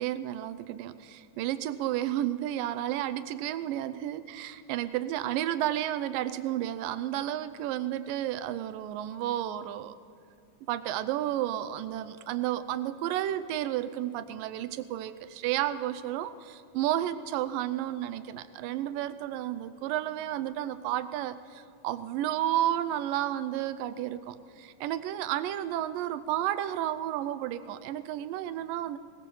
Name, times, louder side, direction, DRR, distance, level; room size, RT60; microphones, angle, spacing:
voice 1, 0.0-10.0 10.7-29.0, right 12 dB, 85° right, 12 dB, 2.4 m, -32 dB
20.5 x 20.0 x 7.0 m, 2.4 s
omnidirectional pair, 3.8 m